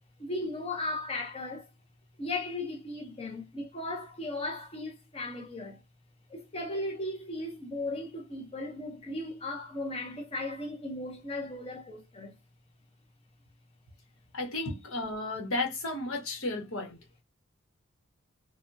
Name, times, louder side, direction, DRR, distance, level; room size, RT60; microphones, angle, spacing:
voice 1, 0.2-1.7 2.2-5.8 6.3-12.4 14.6-15.0, left 2 dB, 30° left, 0.7 m, -36 dB
voice 2, 14.3-17.0, left 2 dB, 75° left, 1.2 m, -33 dB
3.4 x 2.2 x 2.6 m
head